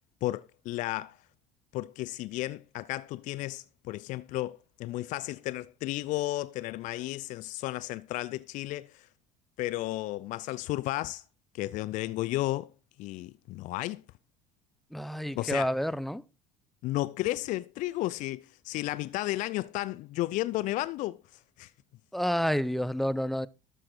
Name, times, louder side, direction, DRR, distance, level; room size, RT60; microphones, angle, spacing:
voice 1, 0.2-1.2 1.7-9.1 9.6-11.2 11.5-12.7 13.0-14.0 15.4-15.7 16.8-21.7, left 17 dB, 55° left, 0.4 m, -33 dB
voice 2, 14.9-16.2 22.1-23.5, equal, ahead, 0.7 m, -29 dB
12.5 x 7.6 x 4.4 m
hypercardioid pair, 65°, 16 cm